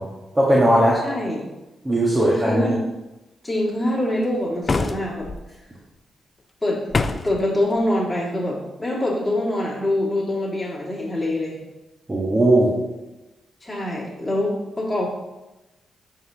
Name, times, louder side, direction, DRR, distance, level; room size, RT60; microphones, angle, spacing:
voice 1, 0.3-1.0 1.8-2.7 12.1-12.7, right 1 dB, 25° right, -5 dB, 1.3 m, -18 dB
voice 2, 1.0-1.5 2.1-2.8 3.4-5.3 6.6-6.8 7.2-11.6 13.6-15.1, left 1 dB, 15° left, -7 dB, 2.2 m, -24 dB
sound 1, 4.6-5.4 6.9-7.4, left 3 dB, 40° left, 0.4 m, -24 dB
10.5 x 3.8 x 2.8 m, 1.0 s
supercardioid pair, 50°, 0 cm